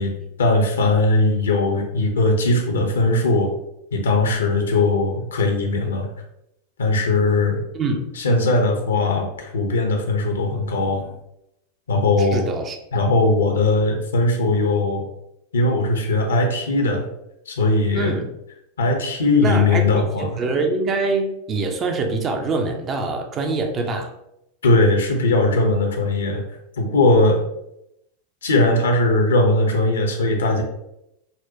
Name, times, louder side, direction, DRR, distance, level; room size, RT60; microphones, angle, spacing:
voice 1, 0.0-3.5 3.9-6.1 6.8-7.6 8.2-11.1 11.9-12.4 12.9-15.1 15.5-17.0 17.5-18.1 18.8-20.3 24.6-26.4 26.8-27.4 28.4-30.6, left 2 dB, 65° left, 3 dB, 0.6 m, -19 dB
voice 2, 7.7-8.1 12.2-12.8 17.9-18.3 19.4-24.1, right 3 dB, 30° right, 5 dB, 0.5 m, -24 dB
4.0 x 2.1 x 2.8 m, 0.82 s
figure-of-eight pair, 90°, 0 cm